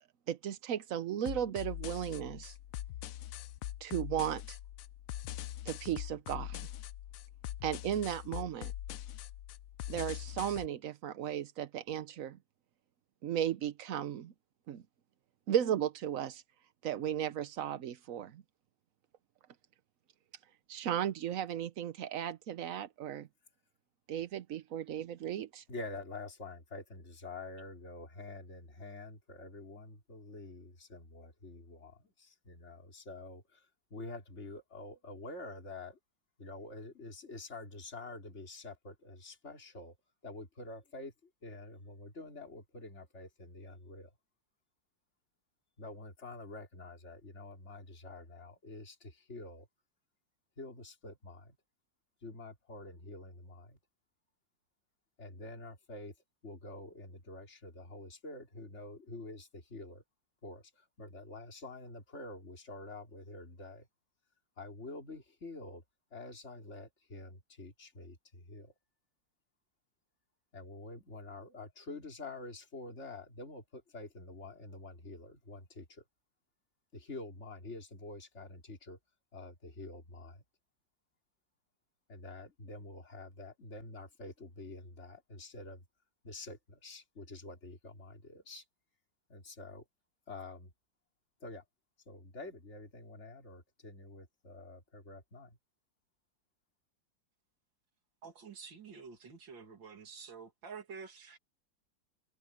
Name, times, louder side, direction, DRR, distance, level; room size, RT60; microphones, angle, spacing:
voice 1, 0.3-2.6 3.8-4.6 5.6-6.7 7.6-8.7 9.9-12.4 13.2-14.3 14.7-14.8 15.5-16.4 16.8-18.4 20.7-23.3 24.1-25.6, right 10 dB, 60° right, 0.9 m, -35 dB
sound 1, 1.3-10.7, left 12 dB, 85° left, 0.7 m, -42 dB
voice 2, 25.7-36.0 36.4-40.0 40.2-41.1 41.4-44.1 45.8-49.7 50.6-51.6 52.2-53.8 55.2-56.1 56.4-60.0 60.4-63.9 64.6-65.8 66.1-68.7 70.5-76.0 76.9-79.0 79.3-80.4 82.1-85.8 86.2-88.6 89.3-89.8 90.3-90.7 91.4-91.6 92.1-95.6, left 2 dB, 35° left, 3.9 m, -47 dB
voice 3, 98.2-101.4, right 5 dB, 80° right, 3.0 m, -49 dB
omnidirectional pair, 2.0 m